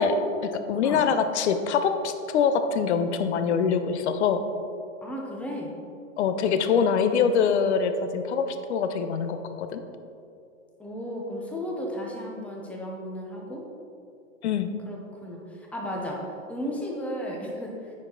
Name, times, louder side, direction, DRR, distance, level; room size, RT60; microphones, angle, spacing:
voice 1, 0.0-4.4 6.2-9.8 14.4-14.7, left 6 dB, 55° left, 9 dB, 0.8 m, -24 dB
voice 2, 5.0-5.7 10.8-13.6 14.9-16.2 16.5-17.7, equal, 5° left, -2 dB, 0.7 m, -34 dB
9.6 x 6.2 x 3.8 m, 2.6 s
hypercardioid pair, 145°, 41 cm